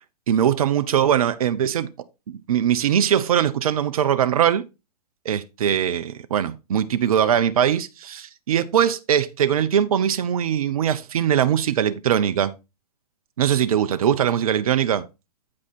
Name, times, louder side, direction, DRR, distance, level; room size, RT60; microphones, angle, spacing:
voice 1, 0.3-1.9 2.3-4.6 5.2-12.5 13.4-15.1, right 9 dB, 65° right, 0.6 m, -21 dB
8.5 x 4.9 x 4.1 m
figure-of-eight pair, 115°, 20 cm